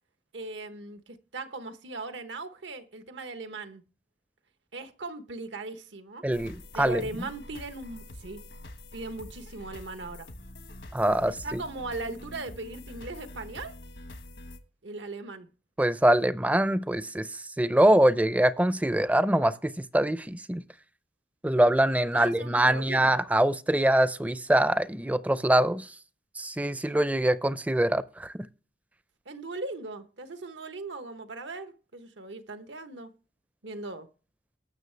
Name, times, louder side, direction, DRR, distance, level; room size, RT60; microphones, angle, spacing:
voice 1, 0.3-3.8 4.7-6.2 6.7-8.4 8.9-10.3 11.4-13.8 14.8-15.5 22.1-23.3 26.9-27.0 29.3-33.1 33.6-34.1, right 2 dB, 90° right, 1.1 m, -39 dB
voice 2, 6.2-7.0 10.9-11.6 15.8-20.6 21.4-25.9 26.4-28.3, right 1 dB, 10° right, 0.4 m, -24 dB
sound 1, 6.3-14.6, left 1 dB, 75° left, 1.3 m, -45 dB
19.0 x 6.5 x 3.3 m
head